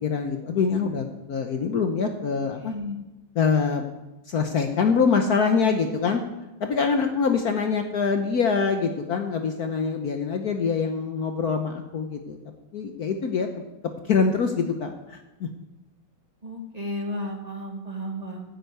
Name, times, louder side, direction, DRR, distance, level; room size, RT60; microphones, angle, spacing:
voice 1, 0.0-2.7 3.3-3.8 4.3-6.2 6.6-12.4 12.7-13.5 14.1-15.5, left 5 dB, 55° left, 5 dB, 1.2 m, -24 dB
voice 2, 2.6-3.0 16.4-18.4, equal, 20° right, 1 dB, 1.5 m, -33 dB
10.0 x 9.2 x 8.0 m, 1.0 s
omnidirectional pair, 2.2 m